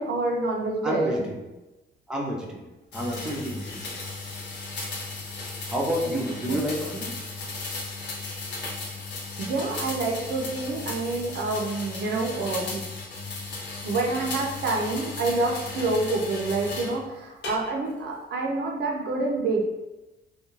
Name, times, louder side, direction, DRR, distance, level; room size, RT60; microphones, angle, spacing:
voice 1, 0.0-1.3 6.5-6.6 9.4-12.8 13.8-19.6, right 3 dB, 60° right, 0 dB, 0.5 m, -27 dB
voice 2, 0.8-1.3 2.1-4.0 5.7-7.1, equal, 5° right, -3 dB, 0.5 m, -30 dB
sound 1, 2.9-17.0 17.4-18.0, left 3 dB, 65° left, 0.8 m, -36 dB
2.3 x 2.2 x 3.0 m, 1.0 s
cardioid pair, 90°, 20 cm